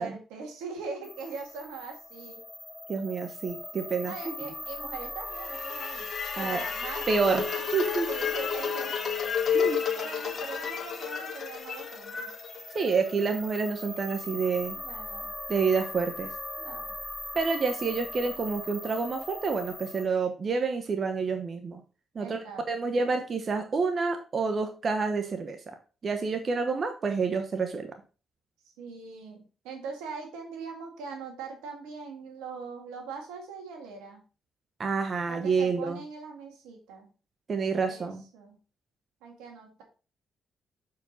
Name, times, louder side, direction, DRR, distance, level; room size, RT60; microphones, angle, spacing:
voice 1, 0.0-2.4 4.0-6.1 6.4-7.7 8.0-9.0 9.9-12.3 14.7-15.3 16.6-16.9 22.2-22.9 28.8-34.2 35.3-37.1 37.8-38.6 39.2-39.8, right 4 dB, 90° right, 3 dB, 1.8 m, -41 dB
sound 1, 1.0-20.1, left 1 dB, 15° left, 0.8 m, -40 dB
voice 2, 2.9-4.5 6.4-6.6 7.1-7.4 7.7-8.1 9.5-9.8 12.7-14.8 15.5-16.3 17.3-21.8 22.1-25.8 26.0-27.9 34.8-36.0 37.5-38.2, right 4 dB, 50° right, 6 dB, 1.0 m, -28 dB
sound 2, 5.4-13.5, left 7 dB, 55° left, 1.1 m, -32 dB
6.7 x 4.8 x 4.0 m, 0.34 s
supercardioid pair, 55°, 0 cm